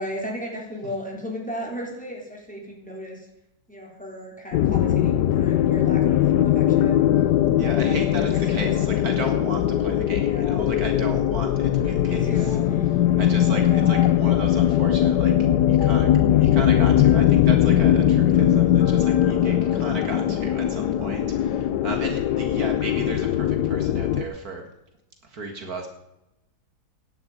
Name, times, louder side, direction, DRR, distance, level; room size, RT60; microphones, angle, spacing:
voice 1, 0.0-3.3 3.7-7.1 7.6-9.0 10.2-10.7 12.1-12.9 13.6-14.1 22.5-22.8, equal, 5° left, -1 dB, 3.9 m, -36 dB
sound 1, 4.5-24.2, left 11 dB, 85° left, 1.3 m, -20 dB
voice 2, 7.6-12.4 13.2-15.3 15.7-24.6 25.2-25.9, right 3 dB, 65° right, 4 dB, 2.3 m, -34 dB
16.5 x 10.5 x 5.1 m, 0.88 s
omnidirectional pair, 1.7 m